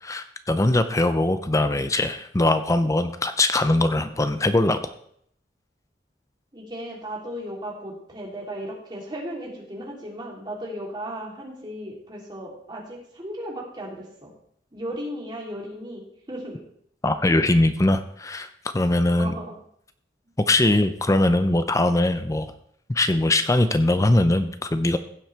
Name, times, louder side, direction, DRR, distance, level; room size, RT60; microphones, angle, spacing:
voice 1, 0.0-4.8 17.0-18.5 18.7-19.3 20.5-22.5 22.9-25.0, left 2 dB, 20° left, 10 dB, 0.5 m, -21 dB
voice 2, 6.5-14.3 14.7-16.6 17.3-17.4 19.1-19.5, equal, 25° right, -3 dB, 3.1 m, -36 dB
16.0 x 7.5 x 3.4 m, 0.67 s
head